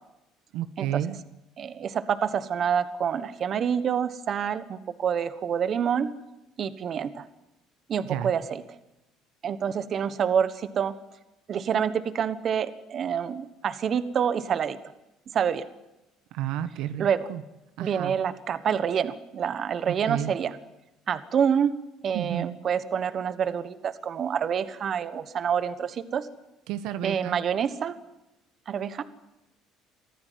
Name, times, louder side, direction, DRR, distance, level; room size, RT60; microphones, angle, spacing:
voice 1, 0.5-1.2 8.0-8.3 16.3-17.4 17.8-18.2 19.9-20.3 22.1-22.6 26.7-27.4, right 11 dB, 75° right, 12 dB, 1.2 m, -31 dB
voice 2, 1.6-6.1 6.6-7.2 7.9-8.6 9.4-10.9 11.5-14.8 15.3-15.7 17.0-17.3 17.8-20.6 21.1-21.7 22.0-26.3 27.0-28.0 28.7-29.0, right 7 dB, 40° right, 13 dB, 1.3 m, -27 dB
24.0 x 15.0 x 9.3 m, 0.97 s
cardioid pair, 140°, 0 cm